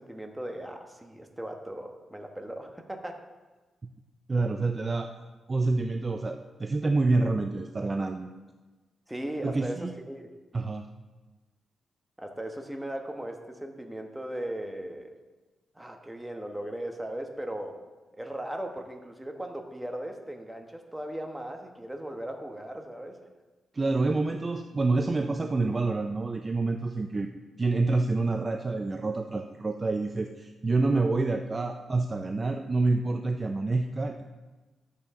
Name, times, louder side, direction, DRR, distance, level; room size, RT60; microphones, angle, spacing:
voice 1, 0.0-3.2 9.1-10.3 12.2-15.1 15.7-17.8 18.2-23.2, right 1 dB, 5° right, 3 dB, 1.1 m, -37 dB
voice 2, 4.3-5.1 5.5-8.3 9.4-9.9 10.5-10.9 23.7-27.3 27.6-34.2, right 3 dB, 30° right, 5 dB, 0.5 m, -27 dB
12.5 x 8.4 x 3.7 m, 1.2 s
cardioid pair, 110°, 0 cm